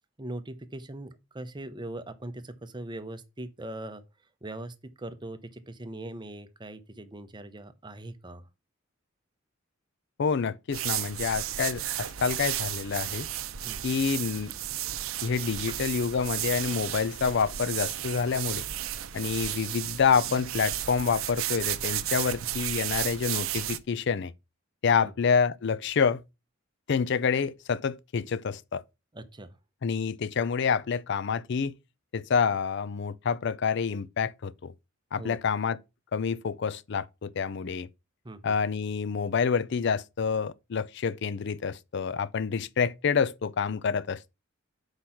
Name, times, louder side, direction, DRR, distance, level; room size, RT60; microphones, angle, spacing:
voice 1, 0.2-4.0 4.4-8.5 13.6-13.8 25.0-25.1 29.1-29.6 35.2-35.4 38.2-38.6, right 1 dB, 20° right, 0.7 m, -41 dB
voice 2, 10.2-13.3 13.8-14.5 15.2-18.6 19.1-24.3 24.8-26.2 26.9-28.8 29.8-31.7 32.1-34.7 35.1-35.8 36.1-37.9 38.4-44.3, left 6 dB, 60° left, 0.4 m, -28 dB
sound 1, 10.7-23.8, right 12 dB, 85° right, 0.6 m, -33 dB
6.1 x 4.9 x 5.7 m
head